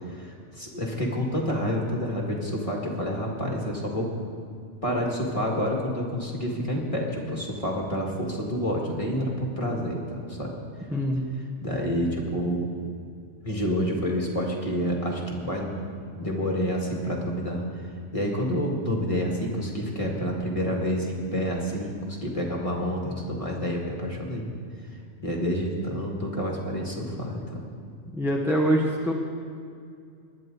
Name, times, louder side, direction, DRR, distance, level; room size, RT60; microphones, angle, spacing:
voice 1, 0.1-4.1 4.8-10.5 11.6-12.6 13.4-15.8 16.1-17.9 18.1-24.4 25.2-27.6, equal, 25° left, -1 dB, 2.1 m, -28 dB
voice 2, 10.9-11.3 28.1-29.1, equal, ahead, -2 dB, 0.9 m, -24 dB
20.0 x 11.0 x 4.0 m, 2.3 s
omnidirectional pair, 1.4 m